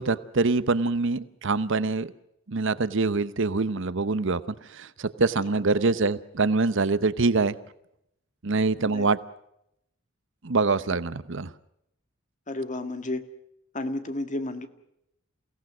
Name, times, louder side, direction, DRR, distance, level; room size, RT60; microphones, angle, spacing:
voice 1, 0.0-2.1 2.5-4.4 4.7-7.6 8.4-9.2 10.4-11.5, right 3 dB, 65° right, 15 dB, 0.9 m, -24 dB
voice 2, 12.5-13.3 13.7-14.7, left 2 dB, 40° left, 9 dB, 1.8 m, -32 dB
29.0 x 17.5 x 6.1 m, 0.78 s
head